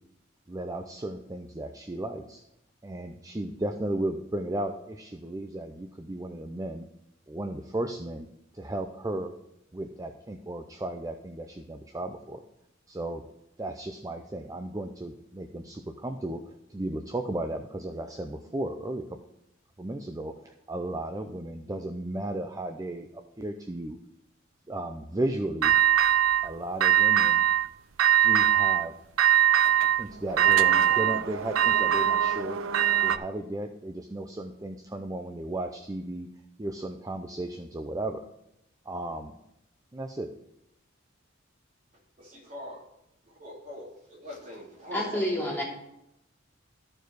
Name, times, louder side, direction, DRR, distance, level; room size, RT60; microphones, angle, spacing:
voice 1, 0.5-2.4 2.8-6.9 7.3-8.3 8.5-9.3 9.7-12.4 12.9-13.2 13.6-19.2 19.8-24.0 24.7-25.8 26.4-27.5 28.2-28.9 30.0-32.6 33.0-36.3 36.6-38.3 38.9-39.3 39.9-40.3, right 1 dB, 15° right, 6 dB, 0.5 m, -35 dB
sound 1, 25.6-26.5 26.8-27.7 28.0-28.8 29.2-33.2, right 11 dB, 80° right, 0.5 m, -22 dB
voice 2, 42.2-42.8 43.3-45.6, left 1 dB, 35° right, -3 dB, 2.8 m, -43 dB
voice 3, 44.9-45.6, left 1 dB, 10° left, -5 dB, 2.8 m, -28 dB
13.0 x 4.7 x 4.7 m, 0.82 s
head